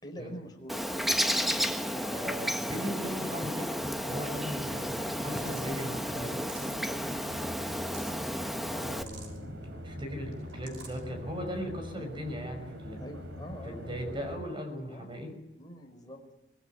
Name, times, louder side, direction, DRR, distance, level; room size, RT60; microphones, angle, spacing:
voice 1, 0.0-2.3 3.4-3.5 6.1-6.6 6.8-7.6 8.7-8.9 13.0-14.4 14.9-15.1 15.6-16.2, equal, 20° left, 2 dB, 4.9 m, -46 dB
Bird, 0.7-9.0, equal, ahead, 1.3 m, -32 dB
voice 2, 2.1-6.3 8.7-13.0 13.6-15.4, equal, 25° right, 6 dB, 6.1 m, -38 dB
sound 1, 3.8-14.4, equal, 65° right, 4.2 m, -43 dB
sound 2, 5.2-5.7 6.3-6.9 7.6-8.2 8.9-9.4 10.3-11.0, right 5 dB, 85° right, 6.0 m, -50 dB
25.0 x 19.5 x 9.5 m, 0.89 s
head